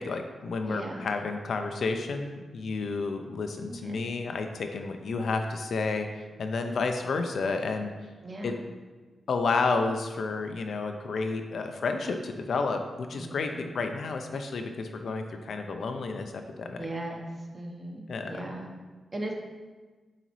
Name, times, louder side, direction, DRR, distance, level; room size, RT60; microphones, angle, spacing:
voice 1, 0.0-7.9 8.4-8.5 9.3-16.9 18.1-18.5, left 4 dB, 70° left, 5 dB, 0.5 m, -31 dB
voice 2, 0.7-1.1 3.7-4.0 8.2-8.6 13.2-13.7 16.8-17.2 17.5-18.7 19.1-19.3, right 1 dB, 30° right, 0 dB, 0.9 m, -38 dB
7.7 x 4.0 x 3.1 m, 1.3 s
wide cardioid pair, 120°, 0 cm